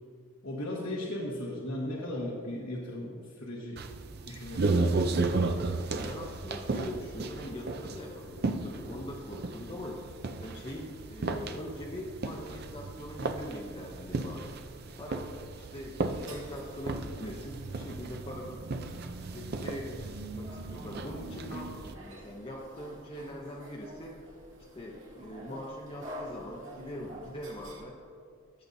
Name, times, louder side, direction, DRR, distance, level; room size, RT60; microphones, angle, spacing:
voice 1, 0.4-3.9 4.3-5.0, left 1 dB, 70° left, -4 dB, 1.3 m, -37 dB
sound 1, 3.8-21.9, right 3 dB, 50° right, 0.5 m, -34 dB
voice 2, 5.9-10.0 10.4-14.5 15.0-18.6 19.3-24.2 24.7-28.0, equal, 25° left, -2 dB, 0.7 m, -42 dB
sound 2, 16.1-27.8, equal, 65° right, 2.2 m, -49 dB
15.5 x 7.0 x 2.7 m, 2.4 s
head